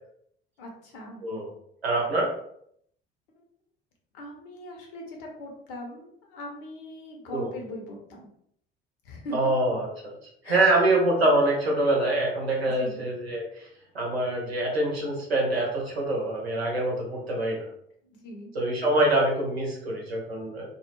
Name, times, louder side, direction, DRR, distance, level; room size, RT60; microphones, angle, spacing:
voice 1, 0.6-1.2 3.4-3.5 4.1-8.3 9.0-9.5 10.4-10.9 12.5-13.0 18.0-18.5, left 1 dB, 65° left, 1 dB, 0.8 m, -41 dB
voice 2, 1.8-2.3 7.3-7.5 9.3-10.1 10.4-13.7 13.9-17.7 18.5-20.7, right 2 dB, 90° right, -2 dB, 0.7 m, -25 dB
2.3 x 2.1 x 3.0 m, 0.69 s
figure-of-eight pair, 55°, 30 cm